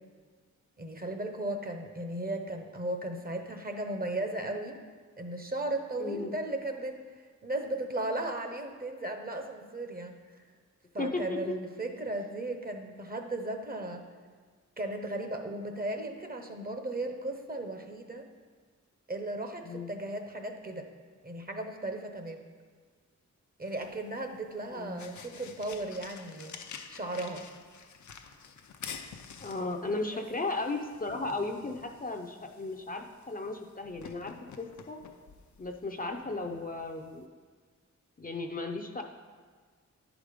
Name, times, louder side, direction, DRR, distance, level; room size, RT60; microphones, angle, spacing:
voice 1, 0.8-4.8 5.2-10.2 10.9-14.1 14.8-18.3 19.1-20.9 21.2-22.4 23.6-26.5 26.9-27.5 30.1-30.2, right 2 dB, 30° right, 5 dB, 0.9 m, -36 dB
voice 2, 6.0-6.3 11.0-11.5 19.6-19.9 24.7-25.2 29.4-35.0 35.6-37.3 38.2-39.0, left 3 dB, 30° left, 3 dB, 0.6 m, -35 dB
sound 1, 23.7-37.3, left 6 dB, 75° left, 0.6 m, -49 dB
10.0 x 5.0 x 5.0 m, 1.6 s
wide cardioid pair, 90°, 29 cm